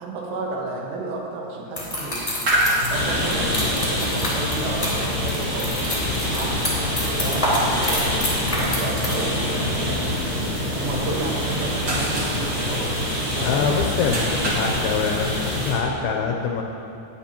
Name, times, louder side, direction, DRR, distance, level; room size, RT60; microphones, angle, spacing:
voice 1, 0.0-2.5 2.8-5.8 6.3-6.5 7.2-8.0 8.4-10.0 10.7-13.3, right 2 dB, 80° right, -2 dB, 3.6 m, -32 dB
sound 1, 1.8-9.2, left 1 dB, 10° left, 1.9 m, -28 dB
sound 2, 2.4-15.7, equal, 40° right, 1.6 m, -29 dB
sound 3, 2.9-15.8, left 1 dB, 20° right, 2.3 m, -26 dB
voice 2, 13.4-16.6, left 5 dB, 80° left, 2 dB, 2.3 m, -25 dB
19.5 x 8.2 x 3.0 m, 3.0 s
omnidirectional pair, 4.9 m